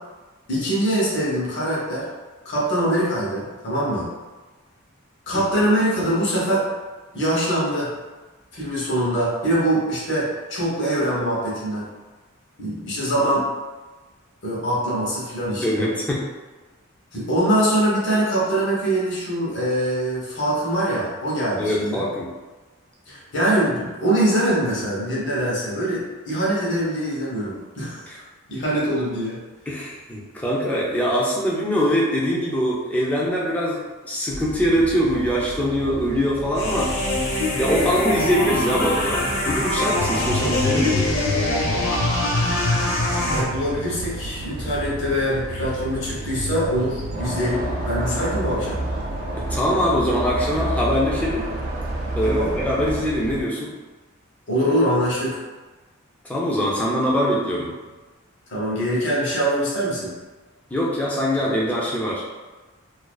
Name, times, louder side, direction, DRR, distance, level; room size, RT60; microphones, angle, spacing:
voice 1, 0.5-2.1 2.4-4.1 5.3-6.7 7.1-7.9 8.5-11.9 12.6-13.5 14.4-15.9 17.1-22.1 23.1-28.2 28.5-29.4 43.2-48.8 52.2-52.6 54.5-55.4 58.5-60.2, right 1 dB, 55° left, -5 dB, 0.8 m, -23 dB
voice 2, 15.6-16.2 21.6-22.3 28.1-28.2 29.7-36.9 37.6-41.1 49.5-51.5 52.2-53.7 56.2-57.7 60.7-62.2, equal, 5° left, -5 dB, 0.3 m, -23 dB
sound 1, 34.3-53.4, right 2 dB, 75° right, 0.3 m, -33 dB
sound 2, 36.5-43.4, left 2 dB, 85° left, 0.9 m, -23 dB
sound 3, 47.1-53.0, right 1 dB, 50° right, 0.7 m, -29 dB
2.4 x 2.3 x 2.3 m, 1.3 s
head